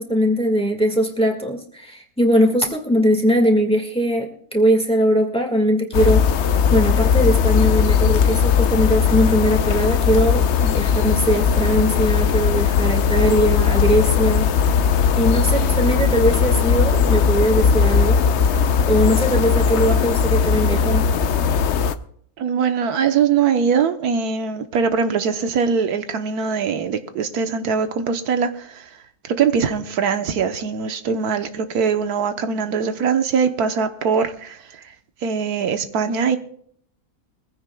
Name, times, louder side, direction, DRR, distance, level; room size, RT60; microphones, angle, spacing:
voice 1, 0.0-6.3 6.7-14.5 15.2-18.2 18.9-21.0, equal, 5° left, 1.7 m, -20 dB
sound 1, 5.9-21.9, left 6 dB, 60° left, 0.8 m, -18 dB
voice 2, 22.4-28.9 29.2-34.8 35.2-36.4, right 6 dB, 90° right, 1.5 m, -22 dB
22.0 x 15.5 x 2.3 m
omnidirectional pair, 1.6 m